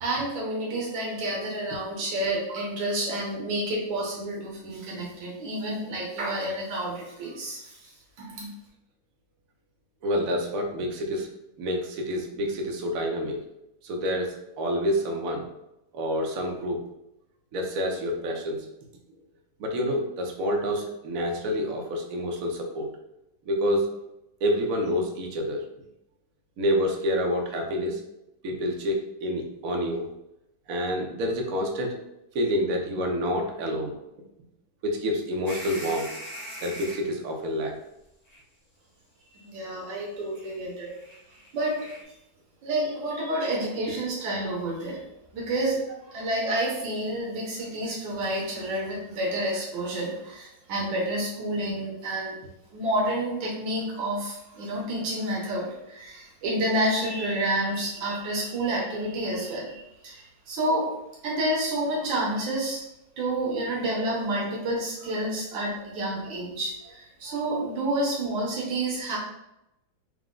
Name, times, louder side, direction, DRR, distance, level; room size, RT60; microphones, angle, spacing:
voice 1, 0.0-8.5 39.3-40.9 41.5-41.8 42.6-45.0 45.3-52.4 52.7-60.9 61.2-62.8 63.2-69.2, right 1 dB, 85° right, -4 dB, 1.7 m, -29 dB
voice 2, 10.0-11.3 11.6-13.4 13.8-15.4 15.9-16.8 17.5-18.6 19.6-22.9 23.5-23.9 24.4-25.6 26.6-28.0 28.4-30.1 30.7-32.0 32.3-34.0 34.8-36.1 36.6-37.8, equal, 60° right, 1 dB, 1.0 m, -28 dB
sound 1, 35.4-37.1 38.3-38.4 40.3-40.6 40.9-42.0, equal, 30° left, 0.8 m, -41 dB
4.9 x 2.1 x 3.7 m, 0.87 s
omnidirectional pair, 2.0 m